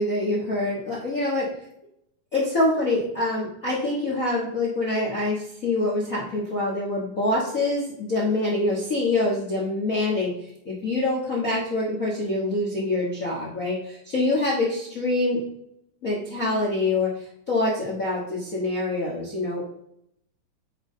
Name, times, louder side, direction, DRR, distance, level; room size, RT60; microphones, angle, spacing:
voice 1, 0.0-1.5 2.3-10.3 10.6-15.4 16.0-19.6, left 2 dB, 60° left, -4 dB, 0.8 m, -25 dB
8.9 x 4.9 x 3.8 m, 0.76 s
omnidirectional pair, 3.8 m